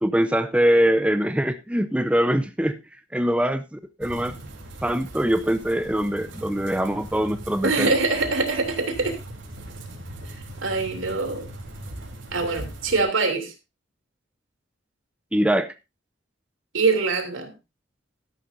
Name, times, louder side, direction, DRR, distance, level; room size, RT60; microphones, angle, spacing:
voice 1, 0.0-2.8 3.1-4.4 4.8-7.9 15.3-15.7, equal, 5° right, 0.5 m, -23 dB
sound 1, 4.0-13.0, right 1 dB, 70° right, 3.5 m, -40 dB
voice 2, 7.6-9.2 10.3-11.5 12.3-13.5 16.7-17.5, right 3 dB, 85° right, 2.9 m, -24 dB
13.0 x 11.0 x 2.7 m
head